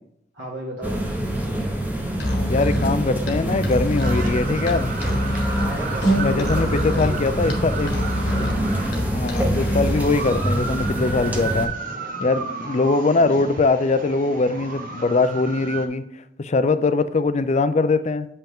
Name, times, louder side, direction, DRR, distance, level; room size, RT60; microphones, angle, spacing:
voice 1, 0.3-1.0 5.6-7.3, right 1 dB, 70° right, -4 dB, 1.7 m, -33 dB
sound 1, 0.8-11.7, right 1 dB, 10° right, 0.8 m, -26 dB
Musical instrument, 2.1-10.1, equal, 65° left, 1.4 m, -26 dB
voice 2, 2.5-4.9 6.2-7.9 9.1-11.7 12.2-16.0 16.4-18.3, left 3 dB, 40° left, 12 dB, 0.4 m, -22 dB
sound 2, 4.0-15.9, right 4 dB, 50° right, 1.0 m, -33 dB
7.4 x 5.6 x 3.6 m, 0.73 s
head